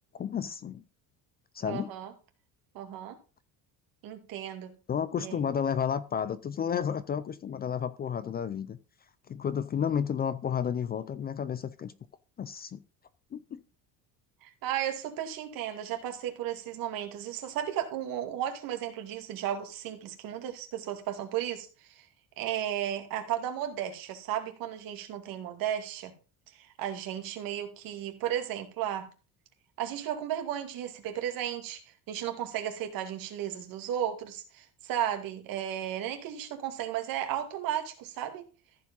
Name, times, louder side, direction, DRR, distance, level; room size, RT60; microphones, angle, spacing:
voice 1, 0.1-0.8 1.5-1.9 4.9-8.8 9.3-11.9 12.4-12.8 13.3-13.6, left 8 dB, 25° left, 0.5 m, -31 dB
voice 2, 1.6-2.1 2.7-3.2 4.0-4.7 5.2-5.4 14.4-22.0 22.4-26.1 26.5-29.1 29.8-31.8 32.1-38.5, right 10 dB, 60° right, 2.4 m, -34 dB
14.5 x 5.1 x 5.4 m
cardioid pair, 165°, 38 cm